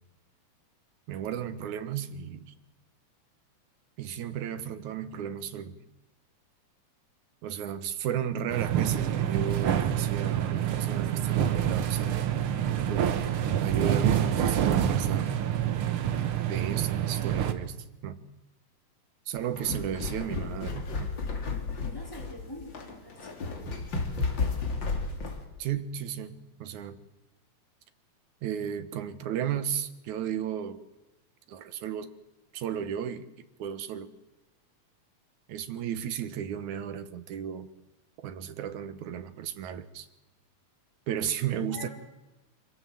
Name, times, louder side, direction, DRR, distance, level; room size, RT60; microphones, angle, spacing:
voice 1, 1.1-2.5 4.0-5.8 7.4-12.1 12.8-13.2 13.6-15.3 16.5-17.8 18.0-18.2 19.3-21.1 25.6-27.0 28.4-30.8 31.5-32.2 32.5-33.3 33.6-34.1 35.5-37.7 38.2-40.1 41.1-41.9, right 9 dB, 85° right, 11 dB, 2.6 m, -34 dB
sound 1, 8.5-17.5, right 10 dB, 60° right, 1.7 m, -27 dB
sound 2, 19.4-25.4, left 4 dB, 40° left, 2.9 m, -33 dB
voice 2, 21.8-23.7 41.7-41.9, left 1 dB, 5° left, 0 dB, 4.5 m, -45 dB
25.5 x 16.5 x 7.7 m, 1.0 s
omnidirectional pair, 3.3 m